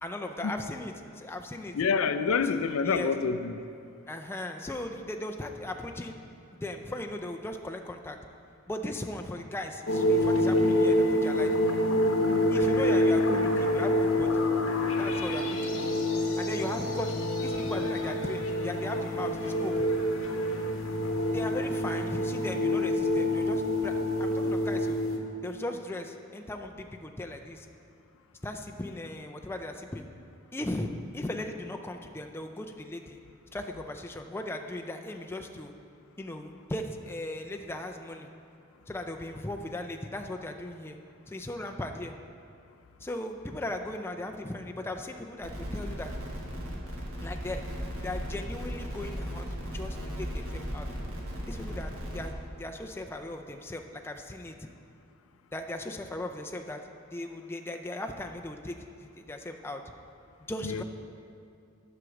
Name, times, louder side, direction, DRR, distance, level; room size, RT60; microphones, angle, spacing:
voice 1, 0.0-1.8 2.8-3.1 4.1-6.2 6.5-8.2 8.7-11.5 12.5-14.5 15.0-15.9 16.4-19.9 21.3-25.0 25.4-27.7 28.4-30.1 30.5-33.2 33.5-35.7 36.2-38.3 38.9-41.0 41.3-42.1 43.0-46.1 47.2-47.6 48.0-49.5 49.7-50.9 51.5-54.6 55.5-56.8 57.1-59.8 60.5-60.8, left 1 dB, 10° left, 4 dB, 0.4 m, -37 dB
voice 2, 1.8-3.5 60.6-60.8, left 5 dB, 85° left, 10 dB, 0.4 m, -27 dB
sound 1, 9.9-25.2, left 1 dB, 70° left, 0.9 m, -27 dB
sound 2, 45.4-52.3, equal, 70° right, 1.7 m, -36 dB
7.9 x 5.9 x 6.3 m, 2.5 s
head